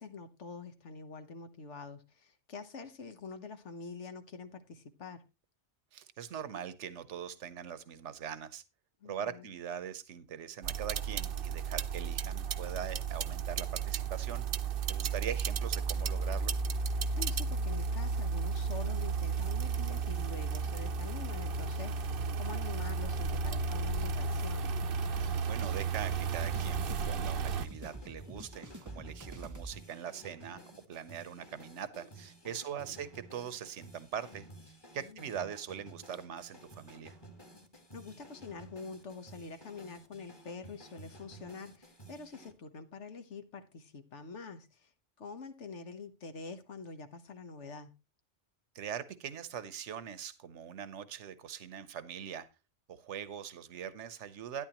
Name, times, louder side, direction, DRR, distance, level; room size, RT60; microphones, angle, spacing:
voice 1, 0.0-5.2 9.0-9.5 15.0-15.3 17.2-24.7 32.5-33.0 35.0-35.3 37.9-44.9 45.2-47.9, left 4 dB, 75° left, 1.4 m, -46 dB
voice 2, 5.9-8.6 9.0-14.5 14.9-16.5 25.2-37.2 48.7-52.5 52.9-54.6, right 8 dB, 75° right, 1.2 m, -42 dB
sound 1, 10.6-27.7, right 5 dB, 55° right, 0.8 m, -33 dB
sound 2, 25.1-42.5, right 1 dB, 20° left, 1.6 m, -54 dB
sound 3, 25.5-29.7, right 2 dB, 20° right, 0.6 m, -46 dB
12.5 x 10.5 x 3.0 m
omnidirectional pair, 1.2 m